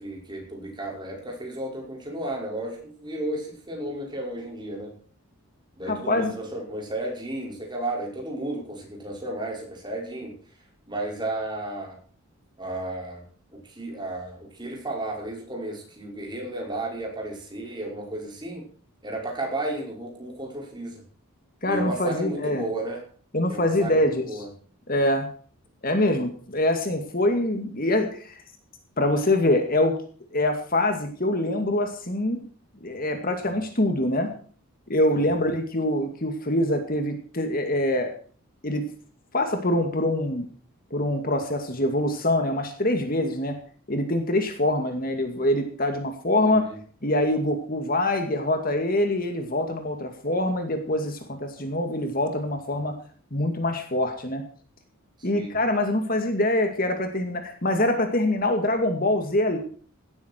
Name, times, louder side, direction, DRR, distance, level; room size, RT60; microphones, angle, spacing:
voice 1, 0.0-4.9 5.8-10.3 10.9-12.0 12.6-13.2 13.5-18.7 19.0-21.0 21.7-23.0 23.5-24.5 35.1-35.4 46.4-46.7 55.2-55.5, right 1 dB, 20° right, -1 dB, 5.6 m, -33 dB
voice 2, 5.9-6.3 21.6-22.6 23.3-24.3 24.9-25.3 25.8-28.4 29.0-30.0 30.3-32.4 32.8-34.3 34.9-38.1 38.6-38.8 39.3-40.5 40.9-43.5 43.9-46.6 47.0-52.9 53.3-54.4 55.2-59.6, left 1 dB, 40° left, 6 dB, 2.2 m, -24 dB
17.0 x 13.0 x 4.6 m, 0.44 s
head